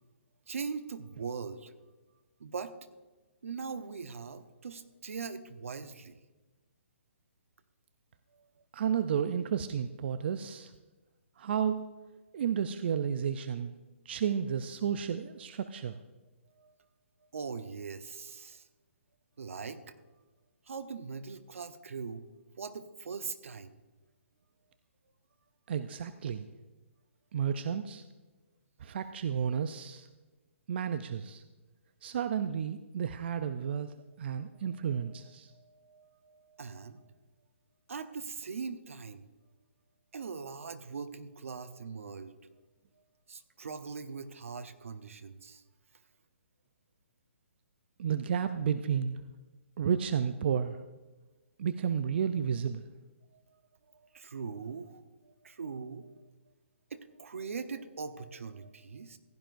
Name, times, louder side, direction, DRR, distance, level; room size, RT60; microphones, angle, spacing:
voice 1, 0.5-1.7 2.4-2.7 3.4-6.2 16.6-16.7 17.3-18.7 19.4-19.9 20.7-22.3 22.6-23.7 34.9-37.0 37.9-39.2 40.1-42.3 43.3-45.6 53.9-56.1 56.9-59.2, right 5 dB, 80° right, 10 dB, 0.9 m, -41 dB
voice 2, 8.7-10.7 11.4-11.8 12.3-13.7 14.1-15.9 25.7-26.4 27.3-28.0 28.8-30.1 30.7-31.4 32.0-35.5 48.0-49.2 49.8-50.8 51.6-52.9, right 8 dB, 50° right, 10 dB, 0.5 m, -32 dB
15.5 x 11.5 x 2.6 m, 1.2 s
hypercardioid pair, 155°, 7 cm